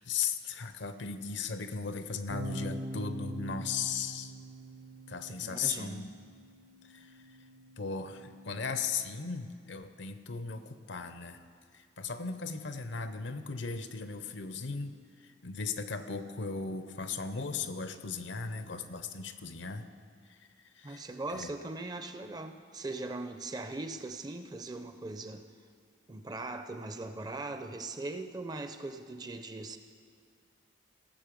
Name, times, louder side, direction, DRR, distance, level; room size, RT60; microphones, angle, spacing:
voice 1, 0.0-4.3 5.1-6.1 6.9-7.1 7.8-11.4 11.7-15.0 15.2-19.9 20.7-21.1 21.3-21.5, left 5 dB, 70° left, 10 dB, 0.7 m, -37 dB
sound 1, 2.3-8.6, right 1 dB, 55° right, 0.8 m, -44 dB
voice 2, 5.3-6.1 20.8-25.4 26.1-29.8, right 2 dB, 20° right, 8 dB, 0.5 m, -40 dB
17.0 x 7.3 x 5.2 m, 2.1 s
head